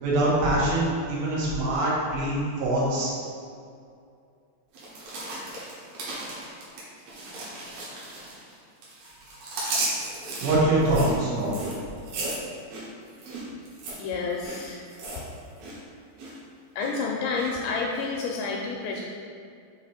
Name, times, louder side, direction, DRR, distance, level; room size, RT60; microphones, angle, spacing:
voice 1, 0.0-3.1 10.4-11.7, right 1 dB, 85° right, -7 dB, 3.9 m, -24 dB
sound 1, 4.7-8.6 8.8-16.4 16.8-17.5 17.9-18.0, right 2 dB, 65° right, 2.8 m, -35 dB
voice 2, 14.0-14.8 16.8-19.0, left 4 dB, 85° left, -1 dB, 2.6 m, -29 dB
7.8 x 3.0 x 4.1 m, 2.3 s
omnidirectional pair, 5.5 m